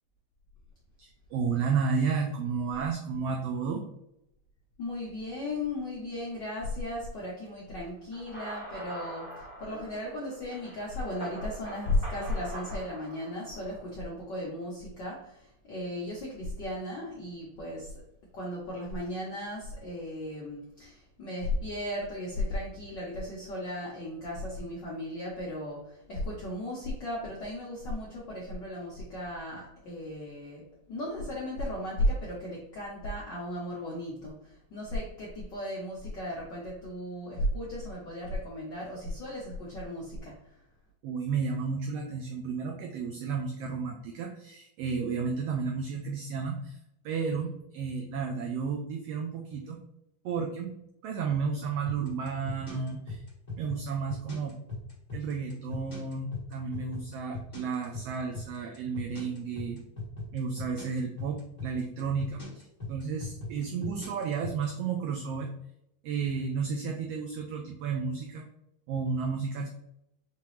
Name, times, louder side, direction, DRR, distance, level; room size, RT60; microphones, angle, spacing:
voice 1, 1.0-3.8 41.0-46.8 47.0-49.8 50.2-50.7 51.0-53.2 53.6-54.5 55.1-59.8 60.3-65.5 66.0-68.5 68.9-69.7, right 5 dB, 90° right, 2 dB, 1.3 m, -32 dB
voice 2, 4.8-18.0 18.3-40.7, left 1 dB, 75° left, -5 dB, 1.0 m, -35 dB
sound 1, 8.1-13.9, right 1 dB, 70° right, 0.5 m, -44 dB
sound 2, 51.9-64.6, left 3 dB, 25° left, 0.9 m, -39 dB
5.3 x 2.9 x 3.1 m, 0.81 s
omnidirectional pair, 3.3 m